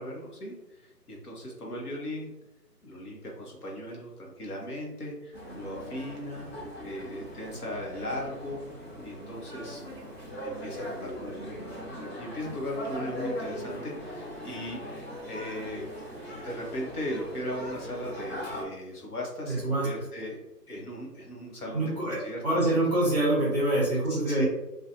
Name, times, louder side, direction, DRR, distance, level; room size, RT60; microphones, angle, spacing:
voice 1, 0.0-2.3 2.8-6.5 6.8-8.6 9.0-9.8 10.4-11.7 12.2-15.9 16.4-22.7 24.1-24.5, left 1 dB, 65° left, -2 dB, 0.9 m, -38 dB
sound 1, 5.3-18.6, equal, 40° left, 0.9 m, -40 dB
voice 2, 19.5-19.9 21.7-22.2 22.4-24.4, right 1 dB, 25° right, -7 dB, 0.8 m, -25 dB
2.5 x 2.3 x 2.6 m, 0.95 s
figure-of-eight pair, 155°, 49 cm